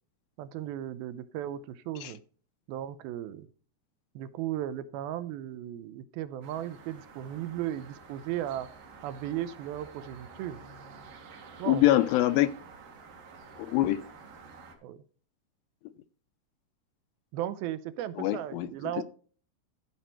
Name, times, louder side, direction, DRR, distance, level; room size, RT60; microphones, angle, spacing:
voice 1, 0.4-2.2 2.7-3.5 4.2-8.7 9.0-10.6 11.6-11.9 14.8-15.0 17.3-19.0, right 12 dB, 80° right, 2.4 m, -36 dB
sound 1, 6.4-14.8, right 4 dB, 65° right, 3.1 m, -50 dB
voice 2, 11.7-12.5 13.6-14.0 18.2-18.7 19.0-19.1, left 15 dB, 80° left, 2.2 m, -24 dB
14.0 x 5.1 x 4.4 m
omnidirectional pair, 4.5 m